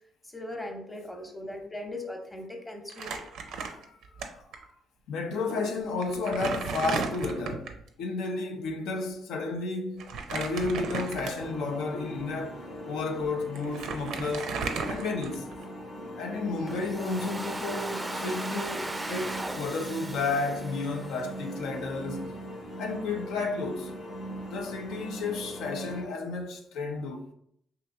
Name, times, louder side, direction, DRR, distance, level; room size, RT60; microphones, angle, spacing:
voice 1, 0.2-3.1, left 1 dB, 10° left, 0.8 m, -39 dB
Crumpling crinkling, 2.9-4.2 4.5-4.6 5.5-5.6 6.0-7.8 10.0-11.6 12.2-12.3 13.2-13.3 13.6-15.6, right 5 dB, 80° right, 0.5 m, -34 dB
voice 2, 3.5-4.0 4.2-4.5 5.1-14.5 14.9-15.5 16.2-22.2 22.8-23.9 24.3-27.3, left 3 dB, 85° left, 0.5 m, -32 dB
sound 1, 11.4-26.0, equal, 60° left, 0.9 m, -40 dB
Domestic sounds home sounds, 16.7-21.6, right 2 dB, 15° right, 0.4 m, -37 dB
3.3 x 2.8 x 3.6 m
cardioid pair, 90°, 0 cm